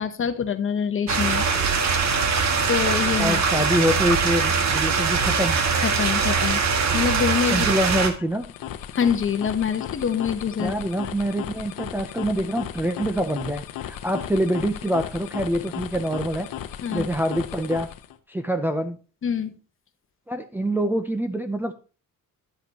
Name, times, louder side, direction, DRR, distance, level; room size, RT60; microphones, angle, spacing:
voice 1, 0.0-1.5 2.7-3.4 5.8-7.7 8.9-10.7 16.8-17.1 19.2-19.5, left 7 dB, 40° left, 9 dB, 1.0 m, -25 dB
sound 1, 1.1-8.1, right 5 dB, 55° right, 1.7 m, -22 dB
voice 2, 3.2-5.6 7.5-8.5 10.6-16.5 16.9-17.9 18.3-19.0 20.3-21.7, right 1 dB, 5° right, 4 dB, 0.6 m, -25 dB
sound 2, 8.2-18.2, left 10 dB, 85° left, 1.0 m, -36 dB
10.5 x 7.8 x 2.9 m, 0.34 s
cardioid pair, 145°, 33 cm